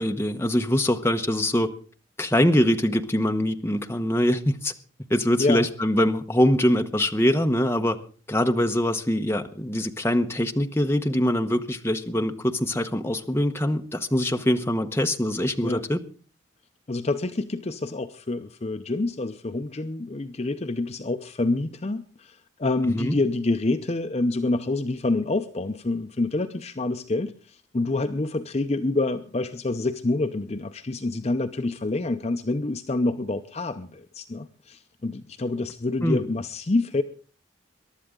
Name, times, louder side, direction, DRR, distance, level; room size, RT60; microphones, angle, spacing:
voice 1, 0.0-1.7 2.2-4.7 5.1-8.0 8.3-16.0 22.9-23.2 36.0-36.2, equal, 10° left, 5 dB, 0.9 m, -23 dB
voice 2, 16.9-37.0, left 2 dB, 30° left, 8 dB, 0.6 m, -27 dB
23.0 x 11.5 x 3.7 m, 0.40 s
head